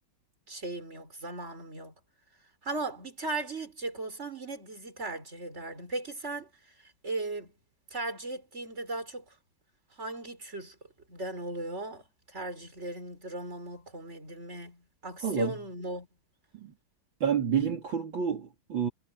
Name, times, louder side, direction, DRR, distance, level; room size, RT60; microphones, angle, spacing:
voice 1, 0.5-1.9 2.6-6.5 6.8-7.5 7.9-9.2 10.0-10.8 11.1-16.1, right 2 dB, 35° right, 5.6 m, -37 dB
voice 2, 15.2-15.5 16.5-16.7 17.2-18.9, right 7 dB, 75° right, 3.4 m, -29 dB
omnidirectional pair, 2.1 m